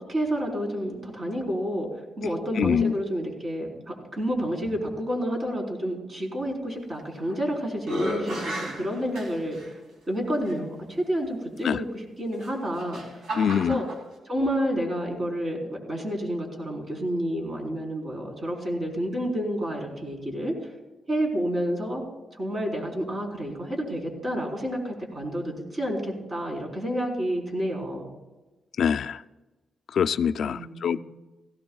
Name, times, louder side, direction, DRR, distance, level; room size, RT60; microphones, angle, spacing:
voice 1, 0.0-1.9 2.2-3.7 4.1-9.7 10.1-13.0 13.6-13.9 14.2-20.5 21.1-22.0 22.4-28.1 30.4-31.0, equal, 40° right, 0 dB, 4.1 m, -29 dB
voice 2, 2.6-2.9 11.6-11.8 13.4-13.8 28.8-29.2 29.9-31.0, left 7 dB, 70° left, 11 dB, 0.3 m, -24 dB
sound 1, 7.0-7.4 7.8-9.7 10.4-10.5 12.3-14.0, equal, 80° right, 2.5 m, -34 dB
17.5 x 16.0 x 2.3 m, 1.1 s
cardioid pair, 90°, 0 cm